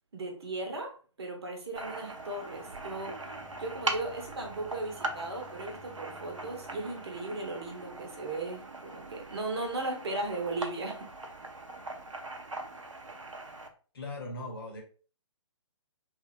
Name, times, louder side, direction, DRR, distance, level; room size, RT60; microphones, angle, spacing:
voice 1, 0.1-3.2 3.6-11.1, right 2 dB, 55° right, 2 dB, 0.9 m, -37 dB
sound 1, 1.8-13.7, right 2 dB, 90° right, 0.5 m, -41 dB
Bowed string instrument, 2.4-8.3, left 3 dB, 10° right, 0.6 m, -58 dB
voice 2, 13.9-14.8, left 2 dB, 50° left, 1 dB, 0.9 m, -39 dB
3.1 x 2.2 x 2.4 m, 0.39 s
figure-of-eight pair, 130°, 16 cm